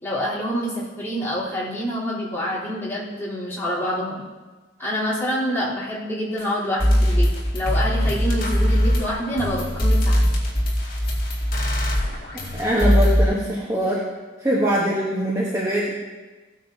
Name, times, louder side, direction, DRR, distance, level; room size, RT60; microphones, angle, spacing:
voice 1, 0.0-4.2 4.8-7.3 7.5-10.2, equal, 10° left, -10 dB, 3.6 m, -26 dB
sound 1, 6.4-6.5 6.8-13.2, equal, 50° left, 2.3 m, -20 dB
voice 2, 12.5-14.0 14.4-15.9, equal, 15° right, -6 dB, 1.2 m, -22 dB
17.0 x 9.1 x 2.8 m, 1.3 s
head